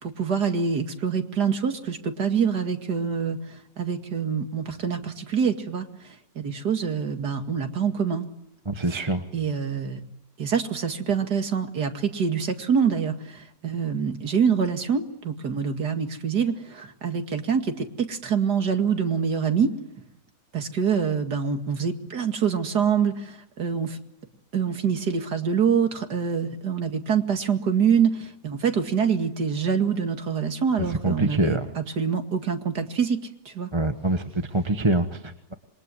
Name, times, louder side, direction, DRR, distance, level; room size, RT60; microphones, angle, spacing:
voice 1, 0.0-8.3 8.9-9.0 9.3-10.0 10.4-19.7 20.5-24.0 24.5-33.2 33.5-33.7, right 6 dB, 80° right, 6 dB, 2.8 m, -25 dB
voice 2, 8.7-9.2 31.0-31.7 33.7-35.5, right 2 dB, 20° right, 7 dB, 1.3 m, -25 dB
27.0 x 23.0 x 9.8 m, 0.87 s
omnidirectional pair, 1.7 m